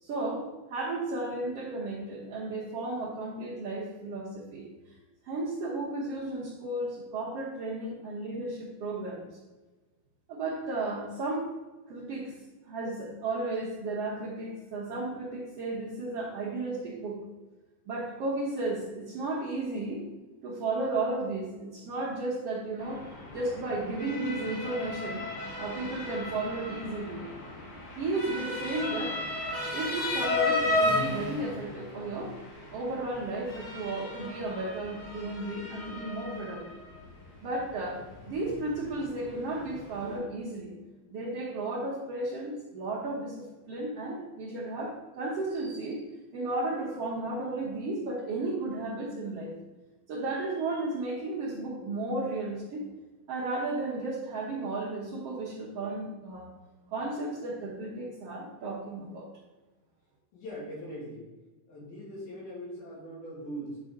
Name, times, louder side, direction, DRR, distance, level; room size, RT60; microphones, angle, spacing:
voice 1, 0.0-4.7 5.2-9.3 10.3-11.5 11.9-12.3 12.7-17.2 17.9-20.0 20.4-23.1 23.3-25.2 25.6-27.2 28.0-29.2 29.7-32.3 32.7-36.8 37.4-40.8 41.1-46.0 46.3-49.5 50.1-52.8 53.3-56.5 56.9-59.3, right 2 dB, 75° right, -7 dB, 1.4 m, -34 dB
Motor vehicle (road) / Siren, 22.8-40.2, left 2 dB, 60° left, 2.8 m, -35 dB
voice 2, 60.3-61.3 61.7-63.8, equal, 80° left, -5 dB, 4.0 m, -41 dB
9.2 x 4.6 x 3.6 m, 1.2 s
omnidirectional pair, 4.2 m